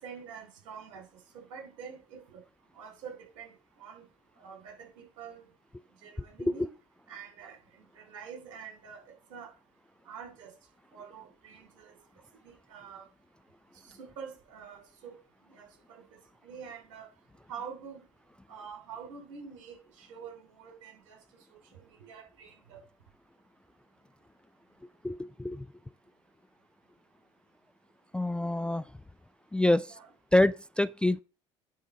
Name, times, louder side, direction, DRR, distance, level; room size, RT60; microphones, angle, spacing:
voice 1, 0.0-2.4 2.7-4.1 4.4-5.5 6.0-6.7 7.1-9.5 10.0-10.5 10.9-11.9 12.4-13.1 13.7-15.2 15.5-17.1 17.5-18.0 18.5-21.2 21.5-22.8 29.9-30.1, right 6 dB, 75° right, 3.3 m, -47 dB
voice 2, 25.0-25.6 28.1-28.8 29.5-29.9 30.3-31.2, left 1 dB, 5° left, 0.3 m, -26 dB
9.8 x 3.7 x 6.1 m
hypercardioid pair, 70°, 16 cm